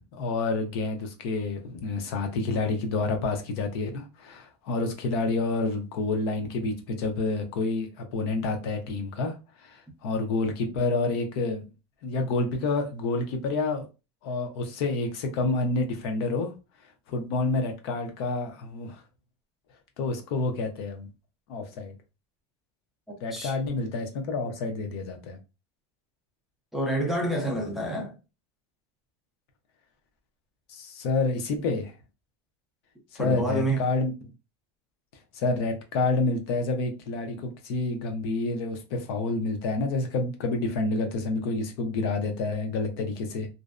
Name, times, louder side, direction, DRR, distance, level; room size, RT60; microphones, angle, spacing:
voice 1, 0.1-9.3 9.6-11.7 12.0-13.9 14.2-16.5 17.1-19.0 20.0-21.1 21.5-21.9 23.2-25.4 30.7-31.9 33.1-34.1 35.3-43.5, left 3 dB, 65° left, 0.6 m, -28 dB
voice 2, 26.7-28.1 33.2-33.8, right 1 dB, ahead, 0.4 m, -28 dB
2.5 x 2.0 x 2.4 m
supercardioid pair, 170°, 14 cm